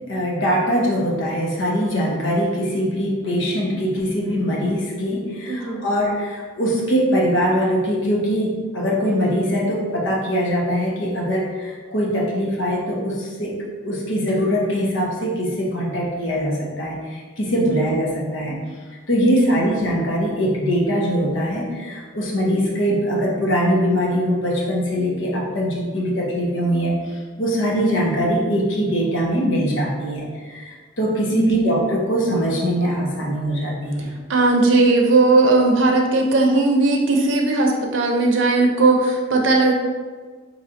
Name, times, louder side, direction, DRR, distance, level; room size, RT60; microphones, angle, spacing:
voice 1, 0.1-18.6 19.1-27.0 27.4-34.1, equal, 85° left, -3 dB, 0.9 m, -22 dB
voice 2, 5.5-5.9 17.5-17.6 19.2-19.6 31.3-31.5 34.3-39.7, right 2 dB, 85° right, 1 dB, 0.6 m, -17 dB
4.2 x 3.1 x 2.5 m, 1.5 s
head